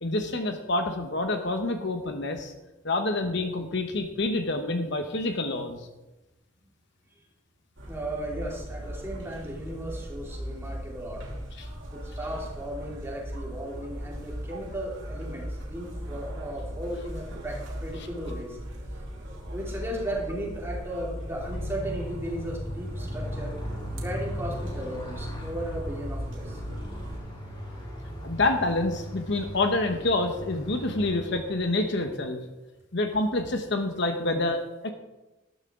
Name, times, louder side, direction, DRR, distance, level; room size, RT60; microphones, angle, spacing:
voice 1, 0.0-2.5 2.8-5.9 11.6-11.7 28.2-32.4 32.9-34.9, left 2 dB, 55° left, 6 dB, 1.0 m, -27 dB
sound 1, 7.8-27.2, equal, 65° right, 2.5 m, -38 dB
voice 2, 7.9-11.4 11.6-18.6 19.5-23.5 24.0-26.6, right 1 dB, 10° right, -3 dB, 3.0 m, -36 dB
Motorcycle, 21.2-31.9, equal, 25° left, 5.0 m, -38 dB
13.0 x 12.5 x 3.7 m, 1.0 s
head